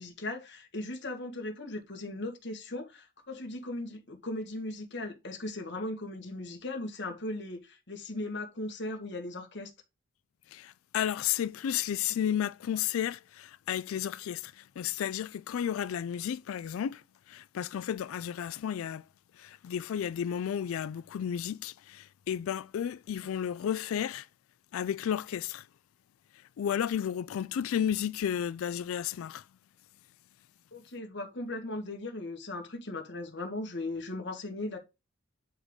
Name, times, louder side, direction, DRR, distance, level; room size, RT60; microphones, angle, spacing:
voice 1, 0.0-9.7 30.7-34.8, left 2 dB, 55° left, 1.8 m, -38 dB
voice 2, 10.5-17.0 17.3-19.0 19.4-24.3 24.7-25.7 26.6-29.4, left 9 dB, 85° left, 0.3 m, -32 dB
9.9 x 3.6 x 3.9 m
head